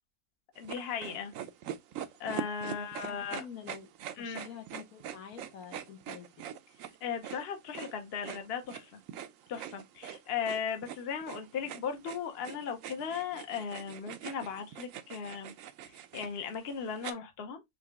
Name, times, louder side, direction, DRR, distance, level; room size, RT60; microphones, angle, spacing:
voice 1, 0.6-1.3 2.2-3.4 4.2-4.5 7.0-9.0 9.5-15.5 15.9-17.6, left 7 dB, 50° left, 0.9 m, -37 dB
sound 1, 0.6-17.1, right 10 dB, 70° right, 0.9 m, -43 dB
voice 2, 2.6-3.9 4.2-6.4, left 7 dB, 85° left, 1.4 m, -48 dB
3.9 x 3.2 x 3.4 m
omnidirectional pair, 1.5 m